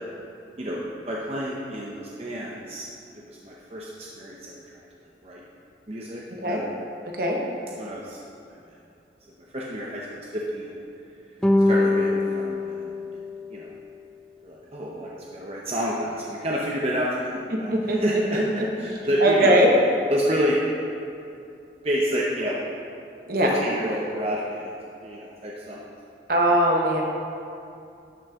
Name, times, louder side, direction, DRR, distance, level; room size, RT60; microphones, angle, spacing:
voice 1, 1.1-2.9 3.1-4.8 5.2-5.4 5.9-6.6 7.7-8.2 8.6-8.7 9.5-10.1 10.3-10.8 11.7-13.2 13.5-13.7 14.4-18.4 18.7-19.6 20.1-20.6 21.8-22.6 23.4-24.7 25.0-25.8, equal, 35° right, -4 dB, 0.8 m, -29 dB
sound 1, 11.4-14.0, left 2 dB, 5° left, 0.4 m, -24 dB
voice 2, 17.5-18.0 18.3-19.7 23.3-23.6 26.3-27.0, right 1 dB, 55° right, 0 dB, 1.1 m, -21 dB
12.0 x 6.2 x 3.7 m, 2.6 s
head